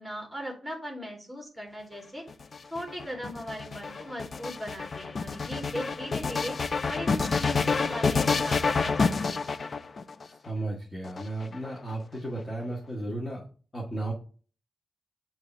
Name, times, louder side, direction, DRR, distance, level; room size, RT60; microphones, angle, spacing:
voice 1, 0.0-2.2 2.7-6.6 6.9-9.4, equal, ahead, 1 dB, 2.4 m, -38 dB
sound 1, 2.3-10.2 11.0-11.9, left 4 dB, 45° left, 0.4 m, -28 dB
voice 2, 10.2-13.4 13.7-14.1, right 2 dB, 25° left, -4 dB, 1.6 m, -34 dB
6.6 x 3.0 x 5.5 m, 0.39 s
cardioid pair, 105°, 0 cm